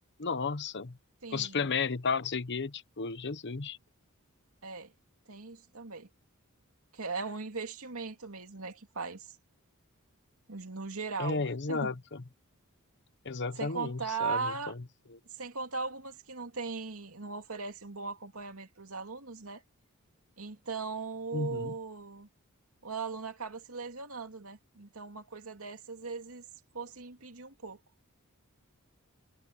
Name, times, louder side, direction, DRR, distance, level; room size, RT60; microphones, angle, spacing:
voice 1, 0.2-1.0 1.3-3.8 11.2-12.2 13.2-14.8 15.1-15.2 21.3-21.7, left 4 dB, 55° left, 1.0 m, -33 dB
voice 2, 1.2-1.6 4.6-4.9 5.3-6.1 6.9-9.4 10.5-11.9 13.5-14.7 15.4-19.6 20.4-22.3 22.8-26.4 26.7-27.8, right 4 dB, 75° right, 2.7 m, -38 dB
head